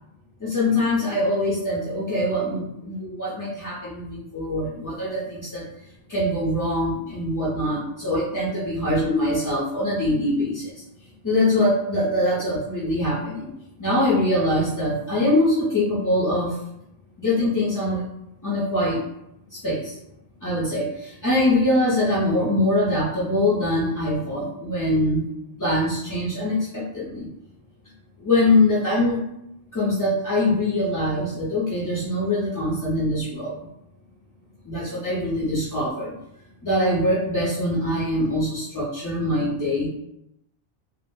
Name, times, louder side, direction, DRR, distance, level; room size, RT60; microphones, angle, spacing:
voice 1, 0.4-5.6 6.1-10.7 11.2-13.5 13.8-16.5 17.2-18.0 18.4-19.0 19.5-19.9 20.4-25.2 25.6-27.3 28.2-29.2 29.7-33.6 34.6-36.1 36.6-39.9, left 1 dB, 35° left, -9 dB, 0.3 m, -23 dB
2.0 x 2.0 x 3.0 m, 0.83 s
omnidirectional pair, 1.1 m